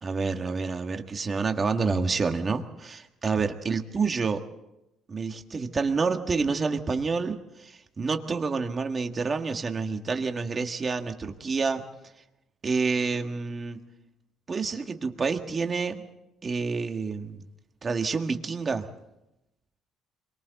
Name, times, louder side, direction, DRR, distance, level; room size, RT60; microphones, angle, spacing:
voice 1, 0.0-4.4 5.1-11.8 12.6-13.8 14.5-16.0 16.4-17.4 17.8-18.9, right 4 dB, 25° right, 5 dB, 1.6 m, -28 dB
28.5 x 23.0 x 4.1 m, 0.90 s
cardioid pair, 150°, 0 cm